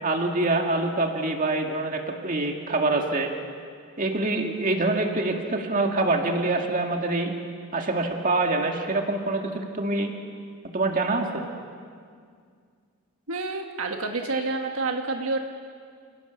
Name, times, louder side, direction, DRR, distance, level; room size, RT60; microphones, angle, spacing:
voice 1, 0.0-3.3 4.0-7.3 7.7-10.1 10.7-11.5, right 2 dB, 40° right, 2 dB, 2.2 m, -25 dB
voice 2, 13.3-15.4, right 3 dB, 75° right, 3 dB, 1.5 m, -28 dB
29.5 x 17.5 x 7.1 m, 2.1 s
head